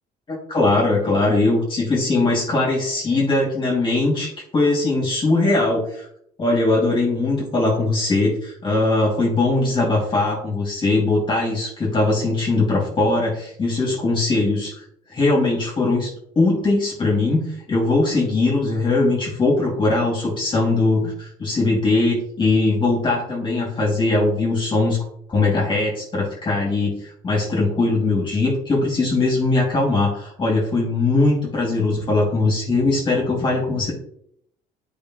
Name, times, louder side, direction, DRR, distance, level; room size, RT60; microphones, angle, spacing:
voice 1, 0.3-6.1 6.4-14.8 15.1-25.0 25.3-33.9, left 2 dB, 30° left, -3 dB, 3.0 m, -20 dB
8.9 x 5.1 x 3.3 m, 0.68 s
cardioid pair, 110°, 17 cm